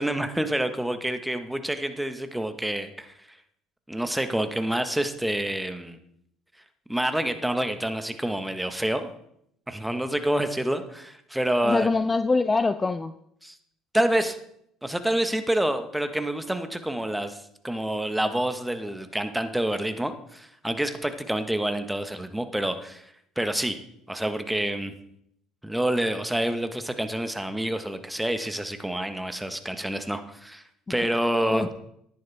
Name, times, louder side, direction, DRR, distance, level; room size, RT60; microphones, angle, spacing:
voice 1, 0.0-3.1 3.9-6.0 6.9-9.1 9.7-11.9 13.4-13.6 13.9-14.4 14.8-23.0 23.4-23.8 24.1-24.9 25.6-30.6 30.9-31.7, right 1 dB, 5° right, 8 dB, 1.4 m, -27 dB
voice 2, 11.6-13.1 31.4-31.7, left 3 dB, 25° left, 12 dB, 0.5 m, -24 dB
14.0 x 10.5 x 3.5 m, 0.73 s
hypercardioid pair, 65°, 0 cm